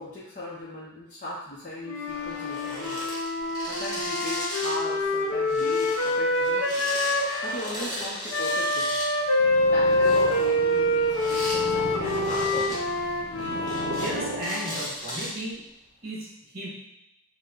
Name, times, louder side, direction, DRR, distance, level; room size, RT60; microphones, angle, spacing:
voice 1, 0.0-3.0 3.7-6.8 7.4-8.9 9.7-12.8, left 1 dB, 35° left, -8 dB, 0.7 m, -38 dB
Wind instrument woodwind instrument, 1.8-7.6 8.3-14.8, left 1 dB, 90° left, 0.8 m, -26 dB
sound 1, 2.1-4.8 5.1-9.1 9.8-11.6 12.0-12.8 13.3-14.1 14.4-15.5 16.0-16.1, equal, 20° left, 1.2 m, -36 dB
Purr, 9.3-15.0, right 2 dB, 70° right, 0.7 m, -36 dB
voice 2, 14.0-15.6 16.0-16.3 16.5-16.7, right 1 dB, 45° right, -4 dB, 1.6 m, -34 dB
5.5 x 2.3 x 3.9 m, 0.84 s
head